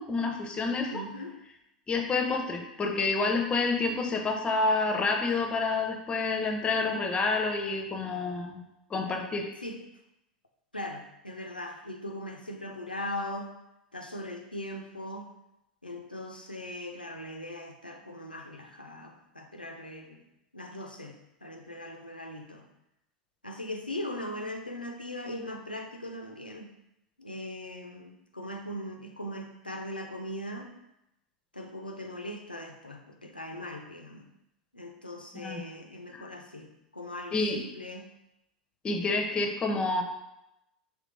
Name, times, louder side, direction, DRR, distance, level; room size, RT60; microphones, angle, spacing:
voice 1, 0.0-1.0 1.9-8.6 8.9-9.5 35.3-35.6 36.1-36.2 37.3-37.6 38.8-40.0, left 3 dB, 20° left, 4 dB, 0.7 m, -28 dB
voice 2, 0.9-1.4 9.6-9.8 10.7-13.5 13.9-15.3 15.8-20.2 20.5-22.6 23.4-26.7 27.2-30.7 31.5-34.3 34.7-38.1, left 1 dB, 85° left, 3 dB, 0.6 m, -40 dB
5.0 x 3.1 x 3.3 m, 0.87 s
figure-of-eight pair, 85°, 5 cm